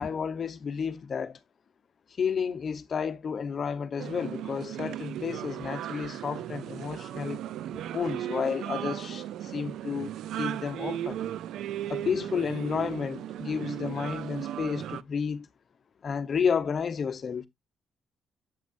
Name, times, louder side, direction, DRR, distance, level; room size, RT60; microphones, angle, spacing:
voice 1, 0.0-1.4 2.2-7.4 7.9-11.2 11.9-15.5 16.0-17.5, left 6 dB, 50° left, 1.0 m, -31 dB
sound 1, 4.0-15.0, right 11 dB, 80° right, 0.4 m, -36 dB
8.4 x 6.1 x 2.6 m
cardioid pair, 90°, 0 cm